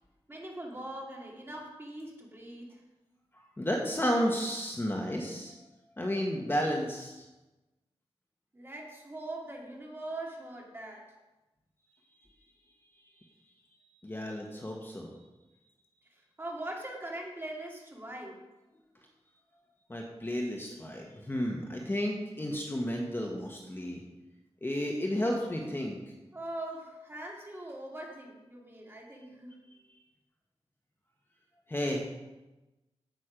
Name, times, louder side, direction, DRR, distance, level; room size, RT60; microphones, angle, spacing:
voice 1, 0.3-2.8 8.5-11.1 16.1-18.4 26.3-29.5, right 1 dB, 20° right, -1 dB, 2.4 m, -42 dB
voice 2, 3.6-5.5 6.0-7.2 14.0-15.1 19.9-24.0 24.6-26.0 31.7-32.0, equal, 20° left, 0 dB, 1.3 m, -32 dB
9.3 x 8.3 x 5.1 m, 1.1 s
wide cardioid pair, 105°, 11 cm